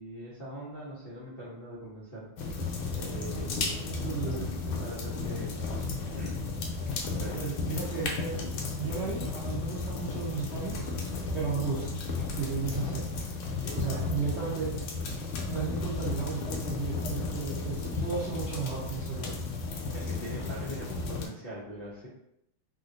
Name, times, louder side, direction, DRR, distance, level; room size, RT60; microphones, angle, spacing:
voice 1, 0.0-2.7 2.9-5.6 6.2-7.5 12.7-12.9 13.6-14.0 19.9-22.1, equal, 60° left, -10 dB, 0.5 m, -42 dB
sound 1, 2.4-21.3, left 3 dB, 80° left, 1.5 m, -34 dB
voice 2, 4.0-4.5 7.3-8.4 8.8-10.9 11.3-12.0 12.3-13.1 13.7-14.7 15.4-19.5, right 5 dB, 80° right, -8 dB, 0.6 m, -34 dB
3.5 x 2.5 x 2.6 m, 0.77 s
omnidirectional pair, 2.4 m